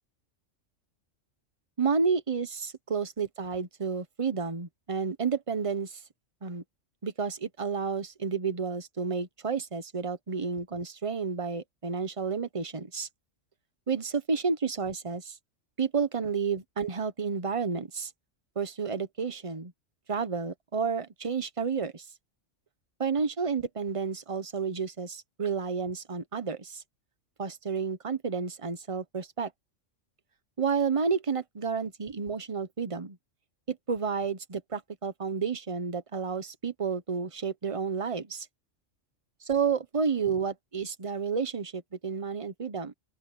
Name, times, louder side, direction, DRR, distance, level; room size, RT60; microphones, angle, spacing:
voice 1, 1.8-6.0 6.4-6.6 7.0-13.1 13.9-15.4 15.8-18.1 18.6-19.7 20.1-22.1 23.0-26.8 27.4-29.5 30.6-33.2 33.7-38.5 39.4-42.9, right 5 dB, 25° right, 1.1 m, -31 dB
open air
omnidirectional pair, 1.3 m